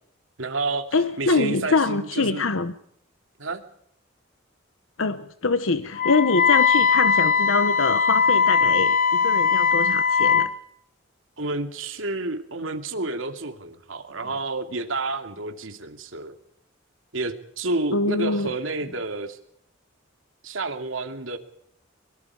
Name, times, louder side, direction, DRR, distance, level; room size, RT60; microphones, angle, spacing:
voice 1, 0.4-0.9 1.2-2.5 3.4-3.6 11.4-16.3 17.1-19.4 20.4-21.4, right 2 dB, 80° right, 2.6 m, -30 dB
voice 2, 0.9-2.7 5.0-10.5 17.9-18.5, left 3 dB, 80° left, 1.0 m, -24 dB
Wind instrument woodwind instrument, 6.0-10.5, left 6 dB, 50° left, 3.1 m, -20 dB
23.5 x 23.0 x 4.9 m
head